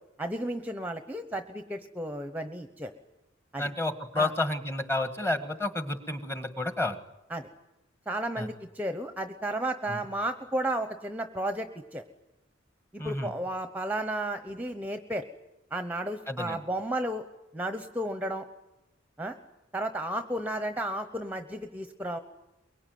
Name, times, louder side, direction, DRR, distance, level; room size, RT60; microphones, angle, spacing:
voice 1, 0.2-2.9 3.5-3.7 4.2-4.3 7.3-7.5 8.1-12.0 12.9-15.2 15.7-17.3 17.5-18.4 19.2-19.4 19.7-22.2, right 1 dB, 10° right, 8 dB, 0.9 m, -33 dB
voice 2, 3.6-7.0 8.4-8.5 9.9-10.0 13.0-13.3 16.3-16.6, left 2 dB, 15° left, 9 dB, 1.6 m, -30 dB
23.0 x 22.5 x 9.4 m, 0.95 s
head